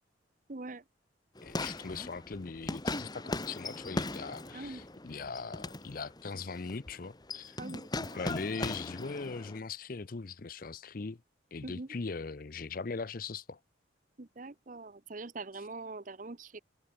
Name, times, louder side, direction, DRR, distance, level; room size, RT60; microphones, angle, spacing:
voice 1, 0.5-0.8 4.5-4.8 7.6-8.2 11.6-11.9 14.2-16.6, right 3 dB, 45° right, 0.8 m, -43 dB
sound 1, 1.3-9.6, left 2 dB, 20° left, 1.4 m, -39 dB
voice 2, 1.4-7.6 8.0-11.2 11.5-13.6, left 4 dB, 45° left, 0.6 m, -40 dB
head